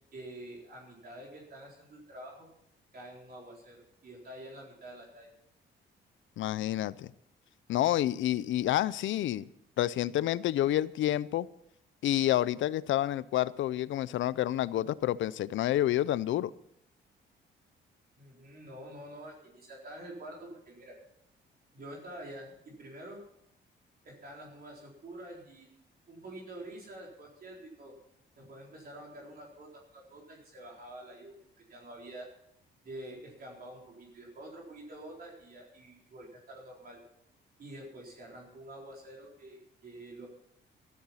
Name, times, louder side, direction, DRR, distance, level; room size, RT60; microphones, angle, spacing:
voice 1, 0.1-2.5 2.9-5.3 18.2-21.0 21.7-23.3 24.0-25.7 26.1-27.9 28.4-32.3 32.8-37.0 37.6-40.3, right 1 dB, 50° right, -2 dB, 4.1 m, -47 dB
voice 2, 6.4-7.1 7.7-9.4 9.8-11.5 12.0-16.5, left 13 dB, 75° left, 18 dB, 0.6 m, -29 dB
13.5 x 13.5 x 5.7 m, 0.75 s
cardioid pair, 90°, 20 cm